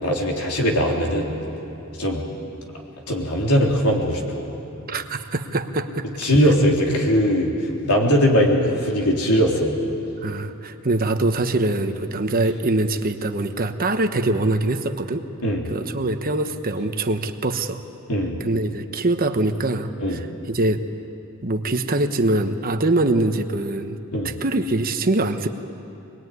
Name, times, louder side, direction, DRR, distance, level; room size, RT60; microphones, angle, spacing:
voice 1, 0.0-1.3 2.0-2.2 3.1-4.5 6.2-7.5 7.8-9.7 15.4-15.7 18.1-18.4 20.0-20.2 24.1-24.4, equal, 85° left, -1 dB, 3.8 m, -20 dB
voice 2, 4.9-6.1 10.2-15.2 15.7-17.8 18.4-20.8 21.4-24.0 24.2-25.5, right 2 dB, 40° right, 7 dB, 1.1 m, -23 dB
25.0 x 20.5 x 9.5 m, 3.0 s
head